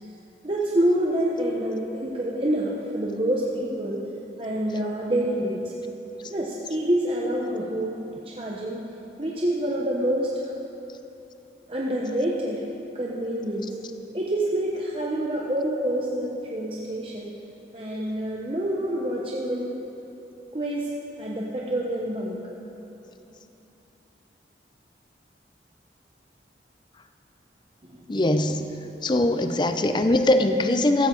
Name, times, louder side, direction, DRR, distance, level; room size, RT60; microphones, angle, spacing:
voice 1, 0.4-4.0 4.4-5.7 6.3-8.0 8.2-8.8 9.2-10.3 11.7-12.6 12.9-13.8 14.1-17.3 17.7-19.7 20.5-20.9 21.2-22.4 27.8-28.1, right 1 dB, 30° right, -4 dB, 1.0 m, -27 dB
voice 2, 28.1-28.6 29.0-31.1, left 1 dB, 25° left, 8 dB, 0.5 m, -21 dB
14.5 x 14.5 x 3.9 m, 2.9 s
head